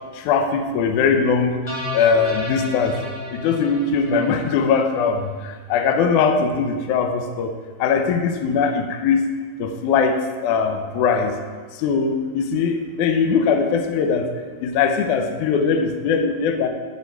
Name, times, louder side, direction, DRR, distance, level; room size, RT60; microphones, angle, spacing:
voice 1, 0.2-1.6 1.9-3.0 3.3-7.5 7.8-9.2 9.6-11.3 11.8-14.3 14.6-16.7, left 5 dB, 75° left, 5 dB, 1.8 m, -20 dB
sound 1, 1.7-5.0, left 2 dB, 20° left, 3.2 m, -32 dB
14.5 x 5.5 x 4.5 m, 1.5 s
omnidirectional pair, 4.3 m